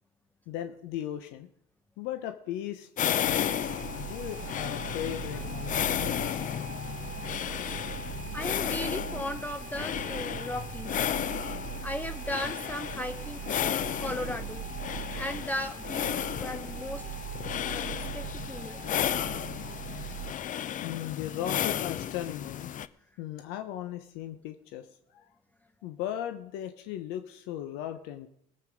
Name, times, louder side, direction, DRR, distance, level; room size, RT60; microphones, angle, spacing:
voice 1, 0.5-1.5 2.0-6.4 20.8-22.7 23.2-25.3 25.8-28.3, left 11 dB, 75° left, 7 dB, 1.1 m, -37 dB
sound 1, 3.0-22.9, left 10 dB, 45° left, 0.7 m, -33 dB
sound 2, 3.2-20.3, right 8 dB, 45° right, 1.0 m, -40 dB
voice 2, 8.1-11.1 11.8-14.7 15.2-17.0 17.7-18.8, left 1 dB, 10° left, 8 dB, 1.0 m, -37 dB
18.5 x 8.2 x 5.2 m, 0.74 s
hypercardioid pair, 70°, 18 cm